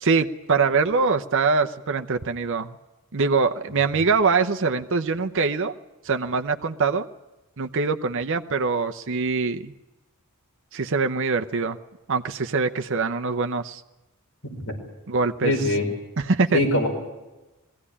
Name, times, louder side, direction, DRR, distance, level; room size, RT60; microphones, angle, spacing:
voice 1, 0.0-2.8 3.1-5.7 6.0-7.1 7.6-9.7 10.7-11.8 12.1-13.8 15.1-15.5 16.2-16.6, right 4 dB, 60° right, 6 dB, 0.8 m, -23 dB
voice 2, 15.4-15.9 16.5-16.9, left 1 dB, 60° left, 0 dB, 5.3 m, -22 dB
21.0 x 16.0 x 9.9 m, 1.0 s
head